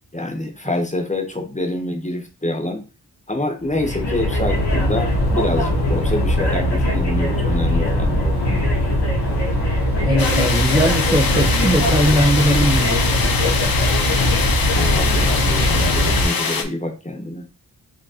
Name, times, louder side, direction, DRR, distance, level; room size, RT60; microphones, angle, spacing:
voice 1, 0.1-2.8 3.3-8.3 14.7-17.5, left 1 dB, 20° left, 5 dB, 0.7 m, -26 dB
sound 1, 3.6-16.2, left 1 dB, 80° left, 1.2 m, -20 dB
voice 2, 10.0-13.7, right 1 dB, 10° right, 1 dB, 0.5 m, -20 dB
sound 2, 10.2-16.6, left 5 dB, 60° left, 0.7 m, -23 dB
4.9 x 2.9 x 2.8 m, 0.33 s
wide cardioid pair, 95°, 40 cm